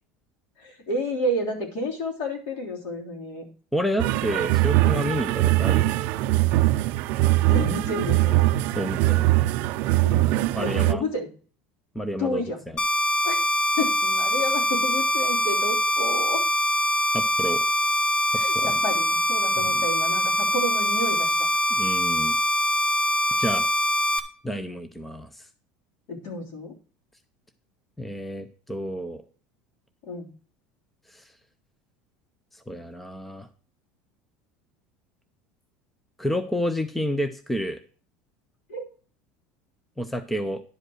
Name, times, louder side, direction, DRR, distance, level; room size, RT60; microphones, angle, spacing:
voice 1, 0.6-3.4 7.5-8.5 10.0-11.3 12.2-12.7 13.2-13.5 13.8-16.4 18.3-21.3 26.1-26.7 30.0-30.3 38.7-38.9, left 1 dB, 55° left, 0 dB, 3.4 m, -30 dB
voice 2, 3.7-5.9 8.8-9.3 10.6-11.0 11.9-12.4 17.1-17.6 18.6-18.7 19.7-19.8 21.7-22.4 23.4-23.7 24.4-25.5 28.0-29.2 31.1-31.3 32.5-33.5 36.2-37.8 40.0-40.6, equal, 5° left, 10 dB, 0.5 m, -29 dB
sound 1, 4.0-10.9, right 17 dB, 50° right, 0.5 m, -22 dB
sound 2, 12.8-24.2, equal, 30° left, 1.1 m, -23 dB
11.0 x 5.2 x 6.3 m, 0.40 s
cardioid pair, 175°, 4 cm